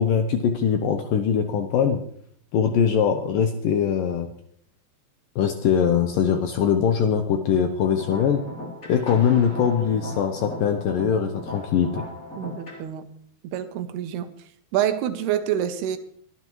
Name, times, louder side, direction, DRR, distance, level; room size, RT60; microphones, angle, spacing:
voice 1, 0.0-2.0 2.5-4.3 5.4-8.4 8.9-12.0, left 7 dB, 75° left, 2.1 m, -22 dB
sound 1, 7.8-12.8, left 1 dB, 20° left, 3.1 m, -38 dB
voice 2, 12.4-13.1 13.4-14.3 14.7-16.0, right 10 dB, 75° right, 2.7 m, -27 dB
23.5 x 11.5 x 3.1 m
omnidirectional pair, 4.9 m